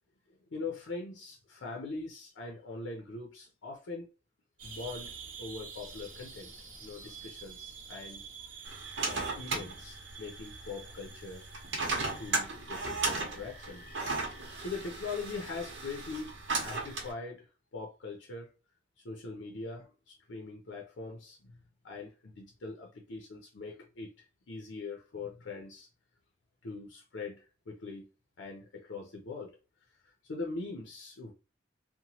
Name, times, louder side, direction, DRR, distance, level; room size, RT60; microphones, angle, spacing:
voice 1, 0.5-4.1 4.6-5.1 5.4-6.5 6.8-8.8 9.0-11.5 12.0-13.9 14.6-16.3 16.6-17.5 17.7-18.5 19.0-21.5 21.8-25.9 26.6-28.1 28.4-29.5 30.0-31.3, left 3 dB, 80° left, 0.6 m, -42 dB
sound 1, 4.6-12.3, right 5 dB, 45° right, 0.7 m, -48 dB
sound 2, 8.6-17.1, right 3 dB, 75° right, 0.9 m, -36 dB
2.9 x 2.1 x 2.7 m
head